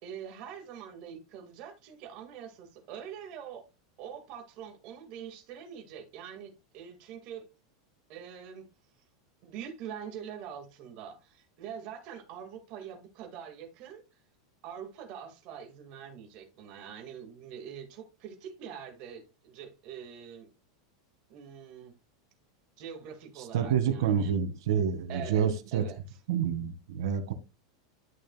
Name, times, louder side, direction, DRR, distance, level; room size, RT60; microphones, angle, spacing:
voice 1, 0.0-3.6 4.0-7.5 8.1-8.7 9.4-14.0 14.6-20.5 21.3-22.0 22.8-24.3 25.1-26.0, right 8 dB, 40° right, 1.9 m, -44 dB
voice 2, 23.5-25.8 26.3-27.3, right 8 dB, 70° right, 1.8 m, -28 dB
11.5 x 6.4 x 2.3 m
supercardioid pair, 175°, 3 cm